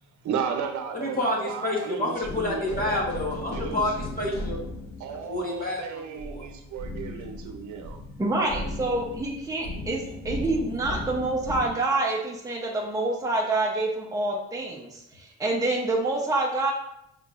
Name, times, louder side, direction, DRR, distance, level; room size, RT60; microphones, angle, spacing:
voice 1, 0.2-3.0 3.4-3.9 5.0-8.0, right 7 dB, 70° right, 6 dB, 0.7 m, -34 dB
voice 2, 0.9-4.6 5.3-6.5, left 2 dB, 30° left, -3 dB, 1.4 m, -29 dB
sound 1, 2.2-11.7, left 1 dB, 70° left, 1.2 m, -37 dB
voice 3, 8.2-16.7, right 2 dB, 10° right, -2 dB, 0.8 m, -27 dB
5.2 x 3.7 x 2.5 m, 0.78 s
cardioid pair, 90°, 30 cm